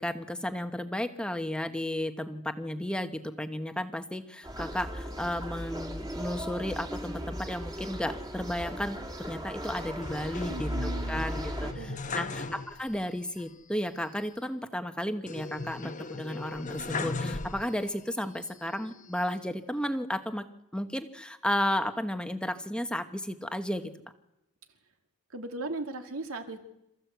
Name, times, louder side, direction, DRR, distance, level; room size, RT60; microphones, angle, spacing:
voice 1, 0.0-9.0 9.3-20.4 20.7-23.9, left 1 dB, 5° left, 8 dB, 1.0 m, -33 dB
sound 1, 4.4-11.7, equal, 15° right, 2.3 m, -37 dB
sound 2, 10.0-13.1 13.4-13.5 15.3-18.0 18.5-19.4, left 3 dB, 35° left, 1.1 m, -38 dB
voice 2, 10.5-11.3 11.6-12.5 25.3-26.6, right 2 dB, 70° right, 6 dB, 2.3 m, -38 dB
27.5 x 14.5 x 8.1 m, 0.86 s
head